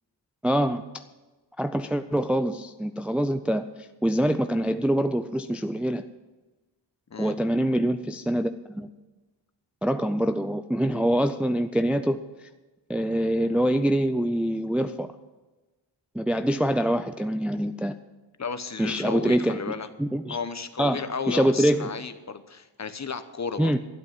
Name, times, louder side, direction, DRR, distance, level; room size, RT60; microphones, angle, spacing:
voice 1, 0.4-0.8 1.6-6.0 7.2-8.9 9.8-12.2 12.9-15.1 16.1-17.9 18.8-19.6 20.0-20.4 20.8-21.0 21.3-21.9 23.6-23.8, right 1 dB, 5° right, 9 dB, 0.4 m, -25 dB
voice 2, 18.4-19.9 20.3-23.7, left 5 dB, 35° left, 10 dB, 0.9 m, -33 dB
12.5 x 8.2 x 7.4 m, 1.2 s
wide cardioid pair, 85°, 45 cm